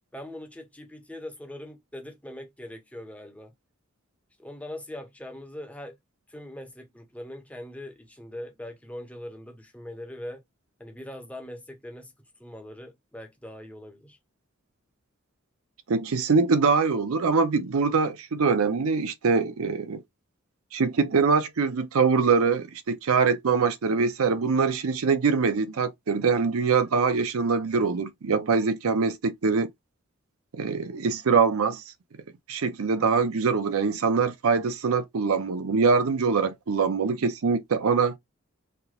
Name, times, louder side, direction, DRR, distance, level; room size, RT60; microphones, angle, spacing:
voice 1, 0.1-3.5 4.4-6.0 6.3-10.4 10.8-12.1 12.4-14.2, left 1 dB, 5° left, 0.8 m, -41 dB
voice 2, 15.9-20.0 20.7-29.7 30.5-31.8 32.5-38.1, right 5 dB, 85° right, 0.6 m, -23 dB
3.3 x 2.9 x 2.3 m
head